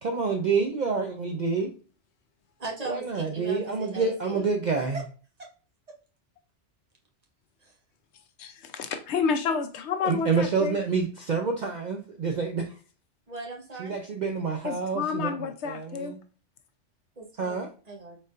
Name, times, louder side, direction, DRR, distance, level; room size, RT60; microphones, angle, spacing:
voice 1, 0.0-1.7 2.9-5.0 10.0-12.8 13.8-16.2 17.4-17.7, right 5 dB, 55° right, 0.5 m, -28 dB
voice 2, 2.6-4.4 7.6-7.8 13.3-14.0 17.2-18.2, right 2 dB, 35° right, 1.0 m, -39 dB
voice 3, 8.4-10.8 14.6-16.1, left 5 dB, 70° left, 0.9 m, -30 dB
4.1 x 3.8 x 2.4 m
omnidirectional pair, 1.2 m